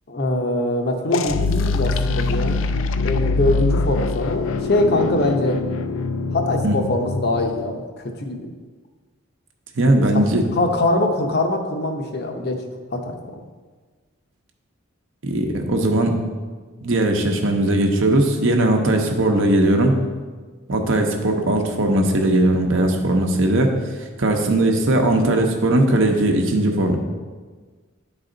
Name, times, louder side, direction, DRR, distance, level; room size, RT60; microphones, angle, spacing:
voice 1, 0.1-2.6 3.0-5.6 6.3-8.5 10.5-12.6 12.9-13.4 25.0-25.5, left 2 dB, 50° left, 3 dB, 0.7 m, -23 dB
sound 1, 1.1-7.7, left 3 dB, 65° left, 0.4 m, -23 dB
voice 2, 9.8-10.4 15.2-16.2 16.8-19.9 20.7-23.7 24.2-27.0, right 1 dB, 65° right, 3 dB, 0.8 m, -19 dB
9.7 x 4.1 x 3.9 m, 1.4 s
head